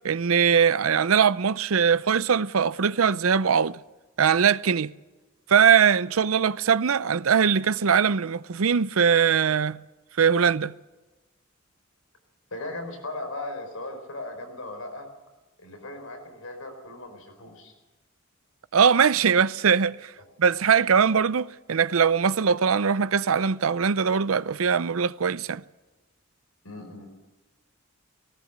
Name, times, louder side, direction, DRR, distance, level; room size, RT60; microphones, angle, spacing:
voice 1, 0.0-3.8 4.2-4.9 5.5-9.8 10.2-10.7 18.7-20.1 20.4-25.6, right 6 dB, 75° right, 0.6 m, -21 dB
voice 2, 12.5-15.1 15.6-17.7 26.6-27.1, left 2 dB, 80° left, 4.7 m, -37 dB
19.0 x 18.0 x 8.1 m
head